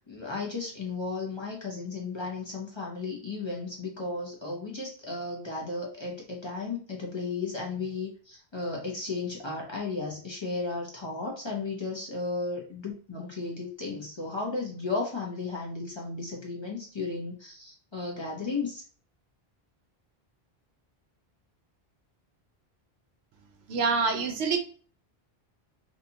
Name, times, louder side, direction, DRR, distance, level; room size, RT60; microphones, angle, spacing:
voice 1, 0.1-18.8, left 3 dB, 30° left, -2 dB, 0.6 m, -34 dB
voice 2, 23.7-24.6, right 4 dB, 85° right, 6 dB, 0.8 m, -26 dB
2.8 x 2.3 x 2.7 m, 0.40 s
omnidirectional pair, 1.0 m